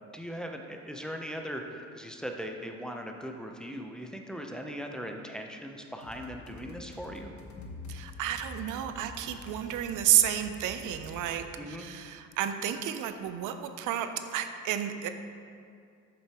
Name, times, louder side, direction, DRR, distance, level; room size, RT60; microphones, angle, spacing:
voice 1, 0.1-7.3 11.6-11.9, equal, ahead, 2 dB, 0.6 m, -39 dB
sound 1, 6.0-11.5, left 3 dB, 70° left, 1.0 m, -49 dB
sound 2, 7.6-10.3, left 3 dB, 45° left, 0.8 m, -48 dB
voice 2, 7.9-15.1, right 11 dB, 85° right, 9 dB, 0.5 m, -31 dB
7.8 x 6.8 x 2.9 m, 2.3 s
cardioid pair, 90°, 30 cm